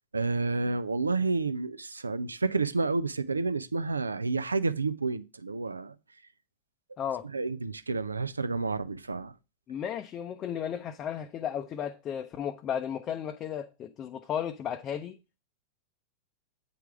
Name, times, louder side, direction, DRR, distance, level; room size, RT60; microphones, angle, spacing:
voice 1, 0.1-5.9 7.3-9.3, right 3 dB, 80° right, 0.4 m, -30 dB
voice 2, 9.7-15.2, left 9 dB, 30° left, 0.6 m, -34 dB
8.6 x 4.6 x 4.7 m
figure-of-eight pair, 90°, 0 cm